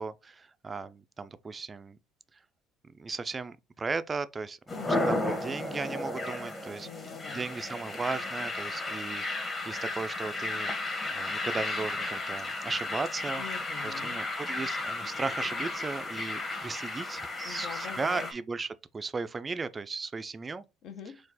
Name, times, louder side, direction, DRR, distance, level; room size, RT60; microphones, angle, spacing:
voice 1, 0.0-2.0 2.9-4.6 4.9-6.9 7.3-10.7 11.1-13.4 13.8-20.6, right 4 dB, 25° right, 0.4 m, -36 dB
sound 1, 4.7-18.3, left 2 dB, 25° left, 1.3 m, -34 dB
voice 2, 6.8-7.5 13.4-14.2 17.4-18.3 20.8-21.2, left 8 dB, 60° left, 0.8 m, -44 dB
4.3 x 2.4 x 4.1 m
cardioid pair, 105°, 0 cm